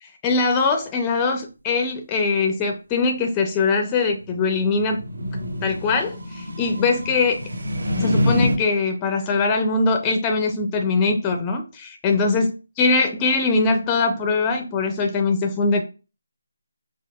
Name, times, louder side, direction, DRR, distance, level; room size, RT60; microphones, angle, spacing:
voice 1, 0.0-5.0 5.6-7.4 8.0-15.8, left 4 dB, 15° left, 4 dB, 0.4 m, -22 dB
sound 1, 4.3-8.6, equal, 75° right, 1.1 m, -26 dB
4.6 x 2.5 x 2.3 m, 0.31 s
figure-of-eight pair, 165°, 0 cm